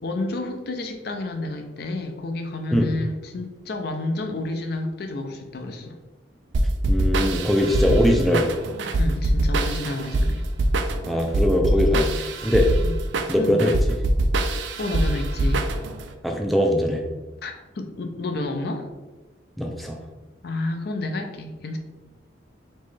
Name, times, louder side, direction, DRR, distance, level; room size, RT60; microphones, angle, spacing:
voice 1, 0.0-6.0 9.0-10.5 12.8-12.9 13.4-13.6 14.4-15.7 17.4-18.9 20.4-21.8, left 2 dB, 55° left, 4 dB, 0.5 m, -30 dB
sound 1, 6.5-16.1, right 1 dB, 75° right, 0.4 m, -23 dB
voice 2, 6.9-8.5 11.1-12.7 13.3-13.9 16.2-17.0 19.6-20.0, left 1 dB, ahead, 1 dB, 0.3 m, -21 dB
4.3 x 3.1 x 3.2 m, 1.1 s
head